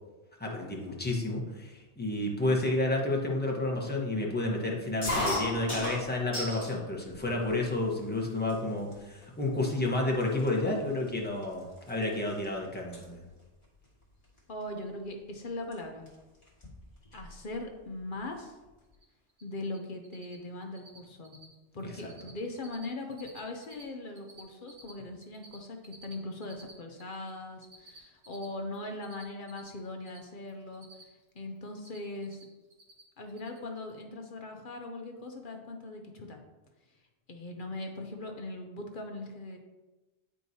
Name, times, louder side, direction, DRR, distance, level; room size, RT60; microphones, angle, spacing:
voice 1, 0.4-13.2, left 2 dB, 10° left, -2 dB, 1.0 m, -30 dB
sound 1, 5.0-6.8 7.2-7.8 8.5-8.6 8.9-9.2 9.9-10.0 10.2-12.5 12.7-13.0 14.4-14.6 15.7-15.8 16.1-16.2 16.4-17.3, left 1 dB, 30° left, 1.5 m, -35 dB
voice 2, 14.5-16.1 17.1-18.6 19.4-21.4 21.7-30.9 31.3-32.4 33.2-36.4 37.3-39.6, left 2 dB, 50° left, 3 dB, 0.9 m, -40 dB
Cricket, 18.9-19.0 19.3-19.8 20.0-20.4 20.6-21.0 21.2-21.5 21.8-22.3 22.6-23.8 24.1-27.3 27.6-30.2 30.5-31.3 31.6-32.4 32.7-33.0 33.3-33.6, right 2 dB, 60° right, 1.8 m, -52 dB
9.8 x 4.6 x 2.7 m, 1.1 s
omnidirectional pair, 1.2 m